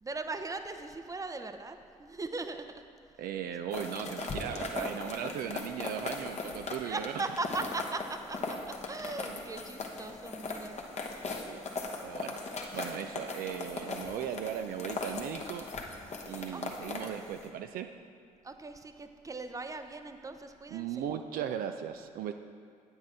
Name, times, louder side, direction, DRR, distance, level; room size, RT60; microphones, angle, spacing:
voice 1, 0.0-2.8 6.8-8.6 8.9-11.2 16.5-16.9 18.4-21.0, right 3 dB, 20° right, 8 dB, 0.6 m, -39 dB
voice 2, 3.2-7.3 9.3-9.4 11.5-11.7 12.0-15.7 16.3-17.9 20.7-22.3, right 9 dB, 65° right, 7 dB, 0.4 m, -37 dB
sound 1, 3.7-17.5, left 3 dB, 45° left, 1.1 m, -39 dB
8.7 x 7.9 x 3.6 m, 2.2 s
hypercardioid pair, 45°, 16 cm